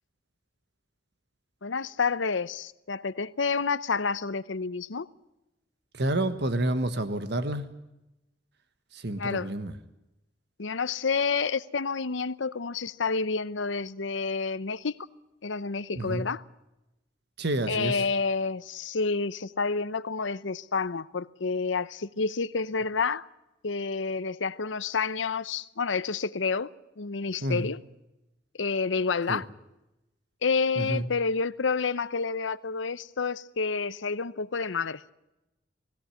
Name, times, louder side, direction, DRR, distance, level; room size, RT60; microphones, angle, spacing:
voice 1, 1.6-5.1 9.2-9.5 10.6-15.0 15.4-16.4 17.7-23.3 23.6-26.7 27.0-27.8 28.6-29.4 30.4-35.0, left 4 dB, 85° left, 0.8 m, -29 dB
voice 2, 5.9-7.7 8.9-9.7 16.0-16.2 17.4-18.0 27.4-27.7 29.3-29.4 30.8-31.1, right 1 dB, 60° right, 1.4 m, -29 dB
20.0 x 17.0 x 9.9 m
head